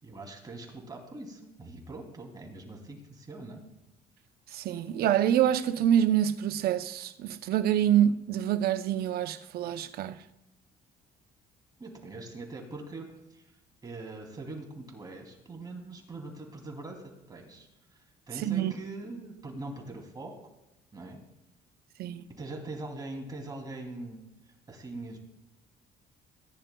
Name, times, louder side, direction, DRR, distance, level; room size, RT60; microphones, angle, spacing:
voice 1, 0.0-3.6 11.8-13.4 13.8-20.4 20.9-21.2 22.4-24.2 24.7-25.2, right 2 dB, 25° right, 2.7 m, -42 dB
voice 2, 4.5-10.2 18.4-18.7 22.0-22.2, right 10 dB, 65° right, 0.7 m, -26 dB
18.0 x 10.5 x 2.3 m
cardioid pair, 110°, 17 cm